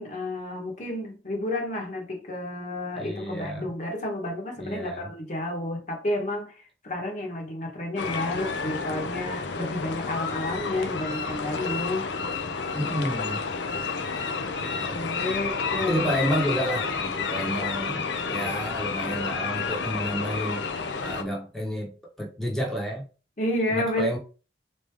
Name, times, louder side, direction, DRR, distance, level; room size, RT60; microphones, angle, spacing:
voice 1, 0.0-12.1 14.9-16.1 23.4-24.2, left 1 dB, 45° left, 1.1 m, -31 dB
voice 2, 3.0-3.7 4.6-5.1 12.7-13.4 14.6-15.0 15.8-21.9 22.2-23.0 23.7-24.2, equal, ahead, 0.9 m, -30 dB
sound 1, 8.0-21.2, left 5 dB, 80° left, 0.6 m, -30 dB
3.7 x 3.3 x 3.4 m
head